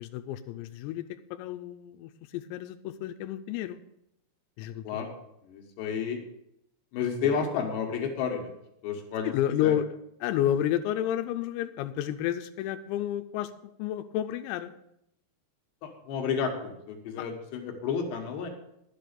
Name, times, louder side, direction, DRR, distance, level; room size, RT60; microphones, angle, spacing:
voice 1, 0.0-3.8 4.6-4.9 7.2-7.5 9.2-10.0 10.2-14.7 17.2-17.3, left 11 dB, 90° left, 8 dB, 3.3 m, -31 dB
voice 2, 5.4-6.2 6.9-8.5 8.8-9.3 9.6-9.7 15.8-18.5, left 6 dB, 70° left, 3 dB, 3.1 m, -31 dB
11.0 x 8.0 x 6.7 m, 0.77 s
omnidirectional pair, 6.0 m